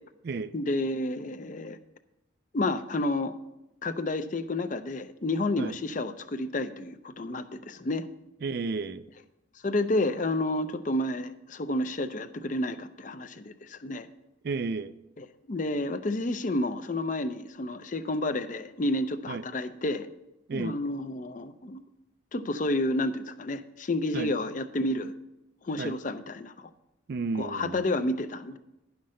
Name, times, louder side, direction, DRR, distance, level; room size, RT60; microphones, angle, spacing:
voice 1, 0.5-1.8 2.5-3.3 3.8-8.1 9.6-14.1 15.2-20.1 20.5-21.8 22.3-25.1 25.6-26.7 27.4-28.6, left 2 dB, 40° left, 10 dB, 0.5 m, -30 dB
voice 2, 8.4-9.0 14.4-15.0 19.3-19.4 20.5-20.8 24.1-24.3 25.8-25.9 27.1-27.8, right 4 dB, 50° right, 14 dB, 0.4 m, -32 dB
10.5 x 5.9 x 6.3 m, 0.92 s
head